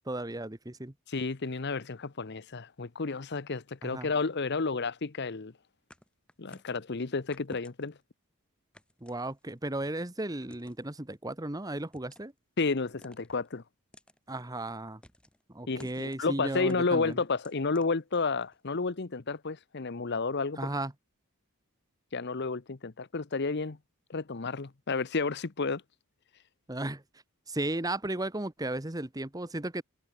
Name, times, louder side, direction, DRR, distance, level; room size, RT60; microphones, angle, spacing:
voice 1, 0.0-0.9 3.8-4.1 9.0-12.3 14.3-15.0 15.5-17.2 20.6-20.9 26.7-29.8, right 1 dB, 15° right, 1.2 m, -35 dB
voice 2, 1.1-5.5 6.4-8.0 12.6-13.6 15.7-20.6 22.1-23.8 24.1-25.8, left 4 dB, 50° left, 0.8 m, -31 dB
sound 1, 5.9-6.8 7.3-8.0 8.7-9.7 10.4-10.9 11.8-12.4 13.0-13.5 13.9-14.2 15.0-15.4 15.8-16.3 16.7-18.6, equal, 5° left, 6.3 m, -56 dB
head